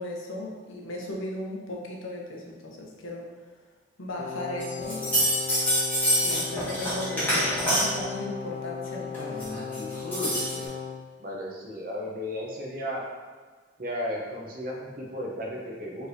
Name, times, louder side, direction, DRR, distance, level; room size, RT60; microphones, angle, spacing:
voice 1, 0.0-3.3 4.0-5.3 6.2-9.6, left 1 dB, 80° left, -1 dB, 0.8 m, -36 dB
Brass instrument, 4.2-11.1, left 6 dB, 35° left, 0.3 m, -37 dB
sound 1, 4.6-8.1 9.1-10.6, equal, 10° left, 1.5 m, -26 dB
voice 2, 11.2-13.0 13.8-16.1, equal, 45° right, -2 dB, 0.8 m, -34 dB
4.7 x 3.3 x 2.7 m, 1.4 s
head